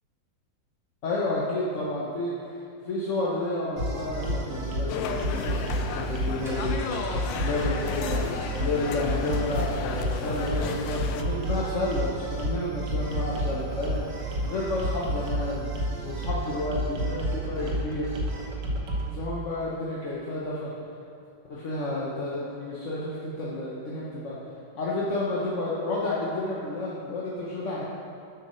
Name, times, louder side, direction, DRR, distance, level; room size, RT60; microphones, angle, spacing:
voice 1, 1.0-7.0 7.4-8.2 8.6-14.0 14.4-15.7 16.0-18.1 19.0-20.7 21.5-24.4 24.7-27.8, left 2 dB, 45° left, -6 dB, 1.2 m, -31 dB
sound 1, 3.8-19.1, right 1 dB, 70° right, 1.9 m, -30 dB
sound 2, 4.9-11.2, left 6 dB, 80° left, 1.3 m, -34 dB
sound 3, 6.3-12.5, equal, ahead, 1.8 m, -47 dB
8.0 x 5.9 x 6.2 m, 2.5 s
omnidirectional pair, 2.0 m